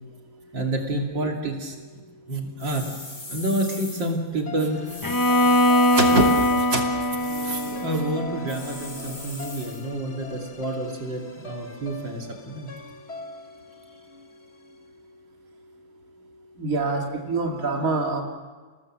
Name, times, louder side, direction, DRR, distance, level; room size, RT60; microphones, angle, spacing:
voice 1, 0.5-1.8 2.3-2.9 3.3-4.8 5.9-6.2 6.6-6.9 7.4-12.7, right 2 dB, 70° right, 1 dB, 3.5 m, -28 dB
sound 1, 2.6-4.2 4.9-6.7 7.2-7.9 8.5-9.8, left 2 dB, 65° left, 5.7 m, -39 dB
sound 2, 4.5-14.7, left 2 dB, 35° left, 2.4 m, -40 dB
Bowed string instrument, 5.0-9.0, left 1 dB, 20° left, 0.5 m, -22 dB
voice 2, 16.6-18.2, right 3 dB, 45° right, 0 dB, 3.1 m, -25 dB
29.5 x 19.0 x 7.6 m, 1.4 s
omnidirectional pair, 2.0 m